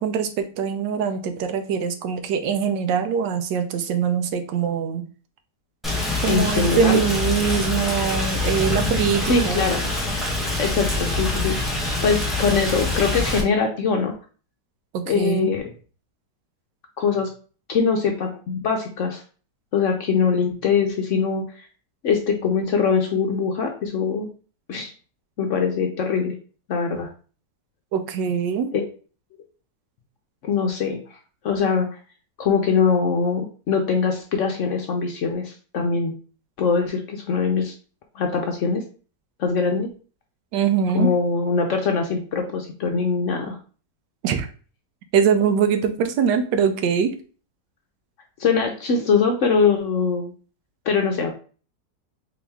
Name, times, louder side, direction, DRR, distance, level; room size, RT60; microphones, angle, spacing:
voice 1, 0.0-5.1 6.2-9.7 14.9-15.5 27.9-28.7 40.5-41.1 44.2-44.5 45.1-47.1, right 7 dB, 85° right, 8 dB, 1.3 m, -23 dB
Rain, 5.8-13.4, left 2 dB, ahead, 0.5 m, -25 dB
voice 2, 6.3-7.0 9.3-9.8 10.6-14.1 15.1-15.7 17.0-17.3 17.7-19.2 19.7-21.7 22.0-24.3 24.7-24.9 25.4-26.4 26.7-27.1 28.7-28.8 30.4-31.0 31.4-32.0 32.4-36.1 36.6-37.7 38.1-38.8 39.4-39.9 40.9-43.6 48.4-50.3 50.9-51.3, left 5 dB, 70° left, 3 dB, 0.7 m, -22 dB
3.9 x 2.9 x 3.4 m, 0.38 s
omnidirectional pair, 1.9 m